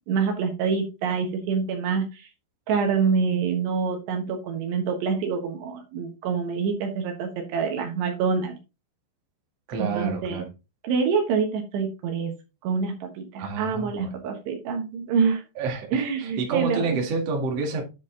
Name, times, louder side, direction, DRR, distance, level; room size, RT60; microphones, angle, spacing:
voice 1, 0.0-2.3 2.7-8.6 9.8-10.5 10.8-12.3 12.6-15.4 15.9-17.0, right 5 dB, 70° right, 3.3 m, -26 dB
voice 2, 9.7-10.4 13.4-14.2 15.6-17.8, right 4 dB, 45° right, 2.2 m, -29 dB
9.9 x 4.2 x 3.8 m
omnidirectional pair, 5.3 m